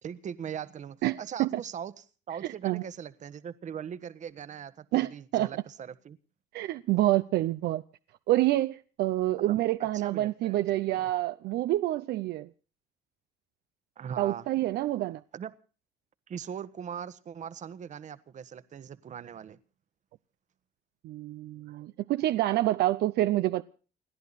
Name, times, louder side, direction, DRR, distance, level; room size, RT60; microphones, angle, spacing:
voice 1, 0.0-6.2 9.4-11.1 14.0-14.5 15.3-15.6 16.3-19.6, right 8 dB, 45° right, 1.3 m, -40 dB
voice 2, 1.0-1.5 2.6-2.8 4.9-5.5 6.5-7.8 8.3-12.5 14.2-15.2 21.0-23.6, right 15 dB, 75° right, 0.7 m, -27 dB
29.5 x 10.5 x 4.1 m
cardioid pair, 110°, 17 cm